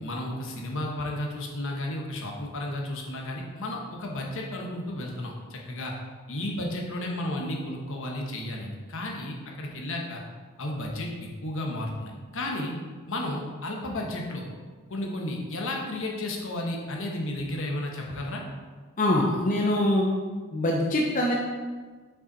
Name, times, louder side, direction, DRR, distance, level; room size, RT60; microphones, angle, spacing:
voice 1, 0.0-5.9 6.3-10.2 10.6-12.7 13.1-14.4 14.9-18.4, left 1 dB, 65° left, 0 dB, 1.1 m, -33 dB
voice 2, 19.0-20.1 20.5-21.3, left 1 dB, 35° left, -2 dB, 0.7 m, -23 dB
6.1 x 5.6 x 4.0 m, 1.4 s
head